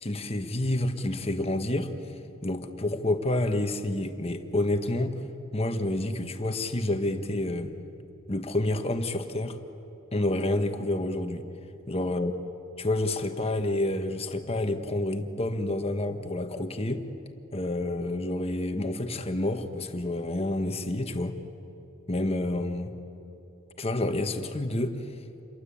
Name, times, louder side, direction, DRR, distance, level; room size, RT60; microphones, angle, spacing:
voice 1, 0.0-1.9 2.4-5.2 5.5-7.7 8.3-9.6 10.1-11.5 11.9-12.3 12.8-17.0 17.5-21.4 22.1-22.9 23.8-25.0, left 1 dB, 25° left, 7 dB, 1.4 m, -29 dB
29.0 x 23.5 x 8.6 m, 3.0 s
head